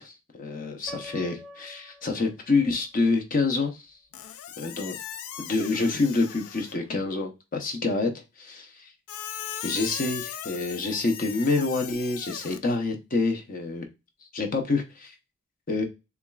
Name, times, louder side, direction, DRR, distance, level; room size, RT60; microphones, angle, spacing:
voice 1, 0.0-3.8 4.6-5.0 5.4-8.1 8.4-8.9 9.6-13.8 14.3-15.1 15.7-15.8, left 3 dB, 40° left, 4 dB, 0.7 m, -27 dB
Piano, 0.9-2.8, left 1 dB, ahead, 0.8 m, -46 dB
Squeak, 4.1-6.9 9.1-12.6, left 10 dB, 70° left, 0.4 m, -38 dB
7.0 x 2.3 x 2.3 m, 0.26 s
head